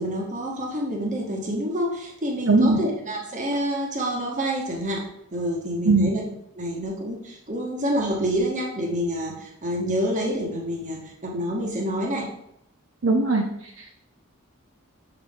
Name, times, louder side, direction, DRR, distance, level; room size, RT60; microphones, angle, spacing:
voice 1, 0.0-6.2 6.6-12.3, equal, 35° right, -1 dB, 1.5 m, -28 dB
voice 2, 2.5-2.8 5.8-6.1 13.0-13.4 13.8-13.9, right 3 dB, 65° right, 1 dB, 0.8 m, -19 dB
6.0 x 6.0 x 3.7 m, 0.75 s
head